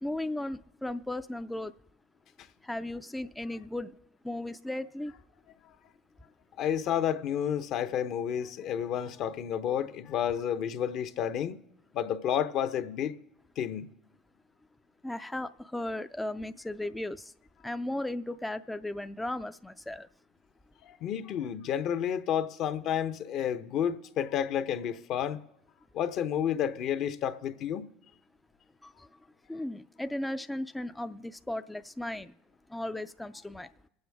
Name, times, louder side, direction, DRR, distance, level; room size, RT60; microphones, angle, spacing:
voice 1, 0.0-1.7 2.6-4.0 4.2-5.1 15.0-17.3 17.6-20.1 28.8-29.2 29.5-32.3 32.7-33.7, left 1 dB, 5° left, 0.4 m, -36 dB
voice 2, 6.6-11.6 11.9-13.2 13.6-13.9 20.8-25.4 25.9-27.9, left 9 dB, 55° left, 0.8 m, -30 dB
23.0 x 7.9 x 3.5 m
hypercardioid pair, 90°, 0 cm